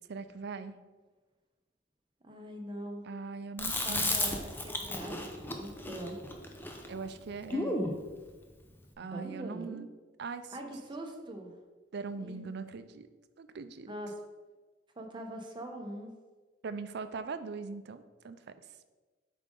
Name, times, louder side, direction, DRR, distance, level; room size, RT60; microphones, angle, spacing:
voice 1, 0.1-0.8 3.0-4.3 6.9-7.8 9.0-9.9 10.2-10.7 11.9-13.1 13.4-13.9 16.6-18.5, right 4 dB, 60° right, 11 dB, 0.5 m, -41 dB
voice 2, 2.2-3.0 3.8-5.2 5.5-6.2 9.0-9.8 10.5-11.5 12.1-12.5 13.8-14.2 15.0-16.1, right 1 dB, 25° right, 2 dB, 0.9 m, -42 dB
Chewing mastication, 3.6-8.0, left 2 dB, 10° left, 0.6 m, -34 dB
7.7 x 5.1 x 3.8 m, 1.3 s
head